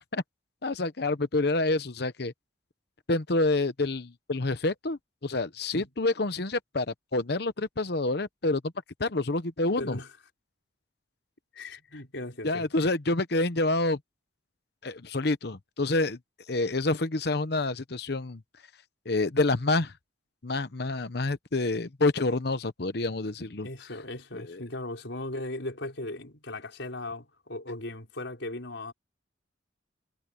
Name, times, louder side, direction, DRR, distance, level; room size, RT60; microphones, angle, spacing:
voice 1, 0.6-2.3 3.1-8.6 9.0-10.0 12.4-14.0 14.8-16.2 16.5-18.4 19.1-19.9 20.4-23.7 24.3-24.6, left 2 dB, 60° left, 1.0 m, -28 dB
voice 2, 9.8-10.1 11.5-12.7 23.6-28.9, left 2 dB, 75° left, 5.2 m, -37 dB
head